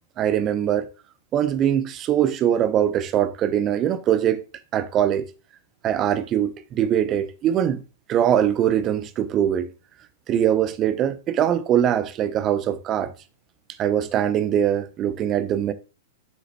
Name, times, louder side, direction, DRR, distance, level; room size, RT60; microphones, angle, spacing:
voice 1, 0.2-0.9 1.3-4.4 4.7-5.2 5.8-7.8 8.1-9.7 10.3-13.1 13.8-15.7, right 10 dB, 30° right, 0.8 m, -22 dB
7.4 x 6.6 x 3.0 m
hypercardioid pair, 105°, 0 cm